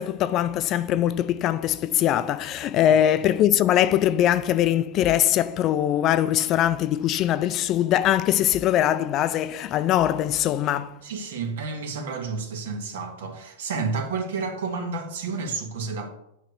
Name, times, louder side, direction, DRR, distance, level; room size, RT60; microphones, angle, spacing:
voice 1, 0.0-11.0, left 11 dB, 35° left, 0.4 m, -22 dB
voice 2, 11.0-16.1, right 4 dB, 75° right, 1.6 m, -30 dB
8.8 x 3.2 x 6.5 m
supercardioid pair, 145°, 0 cm